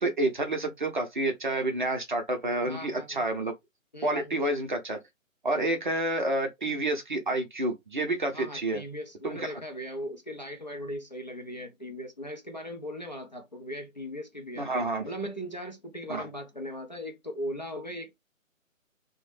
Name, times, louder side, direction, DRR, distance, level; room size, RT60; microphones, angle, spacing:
voice 1, 0.0-3.5 4.0-5.0 5.4-8.8 9.2-9.5 14.6-15.0 16.1-16.3, right 2 dB, 35° right, 0.5 m, -29 dB
voice 2, 2.6-3.2 3.9-4.4 5.6-5.7 8.3-14.7 15.0-18.2, equal, 35° left, 0.4 m, -39 dB
3.0 x 2.1 x 3.1 m
figure-of-eight pair, 150°, 41 cm